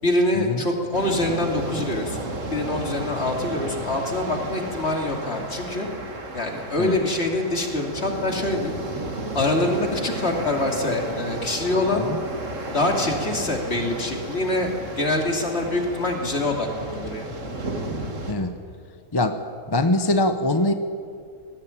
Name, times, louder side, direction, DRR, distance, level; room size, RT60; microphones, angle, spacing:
voice 1, 0.0-2.2 2.5-5.9 6.3-8.7 9.3-12.0 12.7-17.3, left 2 dB, 45° left, 1 dB, 2.9 m, -25 dB
sound 1, 0.9-18.3, right 2 dB, 55° right, 2.4 m, -33 dB
voice 2, 19.1-19.4 19.7-20.7, left 2 dB, 20° left, 8 dB, 0.7 m, -23 dB
20.0 x 15.5 x 8.8 m, 2.3 s
omnidirectional pair, 1.5 m